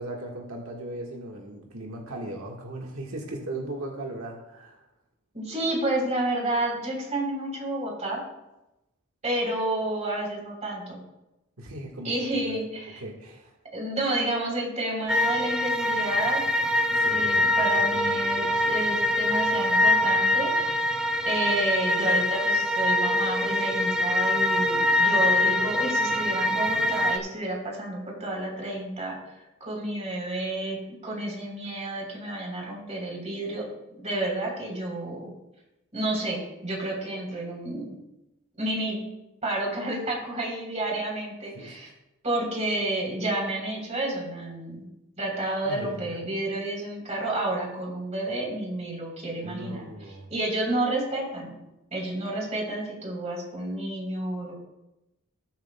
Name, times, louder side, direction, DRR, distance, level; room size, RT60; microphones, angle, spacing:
voice 1, 0.0-4.8 11.6-12.6 13.0-13.5 17.0-18.6 41.5-41.7 45.6-46.2 49.4-50.3, right 1 dB, 85° right, -1 dB, 1.4 m, -38 dB
voice 2, 5.3-8.2 9.2-11.0 12.0-13.0 13.7-16.4 17.1-20.8 21.2-29.2 29.6-33.7 34.0-35.3 35.9-37.9 38.6-39.0 39.4-41.9 42.2-44.9 45.2-49.9 50.3-51.6 51.9-54.5, right 1 dB, 35° right, -1 dB, 3.5 m, -30 dB
sound 1, 15.1-27.2, left 1 dB, 5° right, 0.5 m, -24 dB
19.0 x 7.4 x 2.2 m, 0.95 s
head